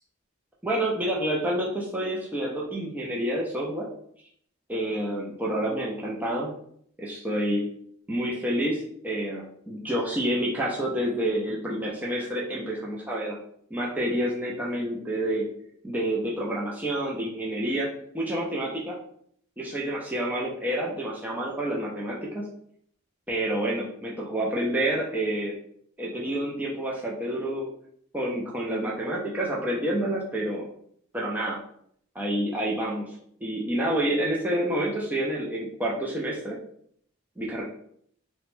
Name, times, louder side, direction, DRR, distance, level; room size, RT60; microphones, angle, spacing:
voice 1, 0.6-3.9 4.7-6.5 7.0-7.6 8.1-13.4 13.7-15.5 15.8-19.0 19.6-22.4 23.3-25.5 26.0-27.7 28.1-30.7 31.1-31.6 32.2-36.6 37.4-37.6, right 1 dB, 10° right, -4 dB, 0.4 m, -28 dB
2.9 x 2.1 x 3.0 m, 0.66 s
head